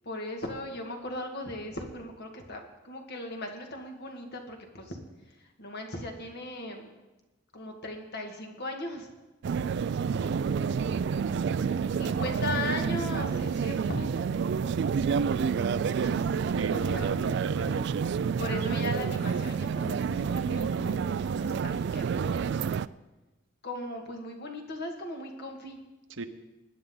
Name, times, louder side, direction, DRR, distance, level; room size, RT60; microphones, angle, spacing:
voice 1, 0.0-5.0 5.4-6.9 7.5-9.1 12.0-14.2 15.6-16.2 16.7-17.1 18.4-22.6 23.6-25.8, left 1 dB, 60° left, 3 dB, 2.0 m, -38 dB
sound 1, 9.4-22.9, right 6 dB, 60° right, 0.3 m, -29 dB
voice 2, 10.0-12.2 16.6-17.9 26.2-26.3, right 3 dB, 90° right, 8 dB, 1.0 m, -39 dB
20.5 x 10.0 x 3.9 m, 1.1 s
head